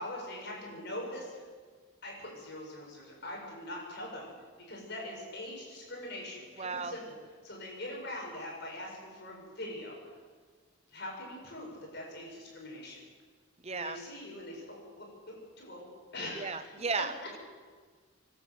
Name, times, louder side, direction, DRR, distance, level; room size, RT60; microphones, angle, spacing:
voice 1, 0.0-1.4 2.0-4.3 4.7-7.1 7.4-10.0 10.9-13.0 13.7-15.9 16.1-16.7, left 1 dB, 50° left, -1 dB, 7.3 m, -42 dB
voice 2, 6.6-6.9 13.6-14.0 16.4-17.4, right 4 dB, 30° right, 11 dB, 0.7 m, -35 dB
28.0 x 12.0 x 8.1 m, 1.5 s
head